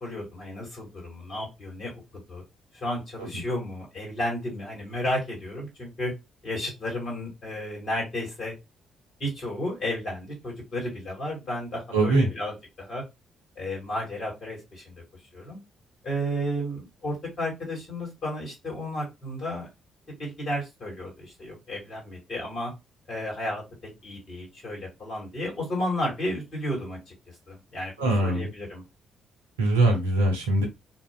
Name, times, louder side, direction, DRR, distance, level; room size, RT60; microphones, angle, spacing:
voice 1, 0.0-1.9 2.3-2.4 2.7-6.1 6.4-8.5 9.2-13.0 13.6-15.0 15.3-15.6 16.0-19.7 20.2-22.7 23.1-23.6 24.0-27.1 27.5-28.8, left 1 dB, 50° left, -3 dB, 1.8 m, -32 dB
voice 2, 11.9-12.3 28.0-28.5 29.6-30.7, right 2 dB, 80° right, 2 dB, 0.6 m, -22 dB
2.8 x 2.5 x 2.3 m, 0.23 s
figure-of-eight pair, 40°, 0 cm